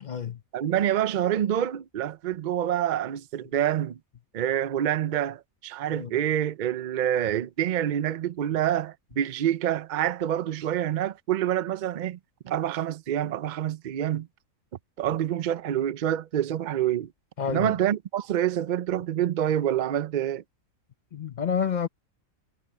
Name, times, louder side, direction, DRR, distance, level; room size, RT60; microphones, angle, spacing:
voice 1, 0.0-0.4 5.9-6.1 17.4-17.8 21.1-21.9, left 7 dB, 45° left, 0.6 m, -29 dB
voice 2, 0.5-4.0 4.3-12.2 12.4-14.3 15.0-17.1 17.5-20.4, right 11 dB, 70° right, 0.4 m, -27 dB
omnidirectional pair, 1.4 m